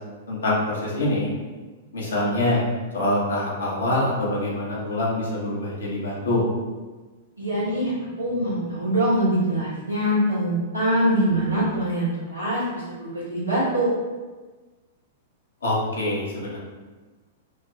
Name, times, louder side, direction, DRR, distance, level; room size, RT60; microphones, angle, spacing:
voice 1, 0.3-1.3 1.9-2.6 2.9-6.4 15.6-16.6, left 1 dB, 70° left, -5 dB, 1.2 m, -25 dB
voice 2, 7.4-13.9, right 1 dB, 85° right, -7 dB, 1.4 m, -24 dB
3.7 x 2.4 x 3.5 m, 1.3 s
figure-of-eight pair, 100°, 0 cm